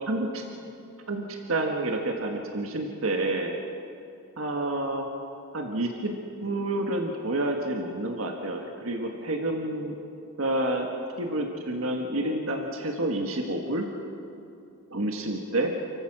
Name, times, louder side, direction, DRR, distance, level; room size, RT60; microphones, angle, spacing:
voice 1, 0.1-0.4 1.1-3.5 4.4-5.1 5.5-6.1 6.4-10.0 10.4-10.9 11.2-13.9 14.9-15.7, right 1 dB, 70° right, 2 dB, 1.7 m, -29 dB
29.0 x 15.5 x 6.2 m, 2.6 s
head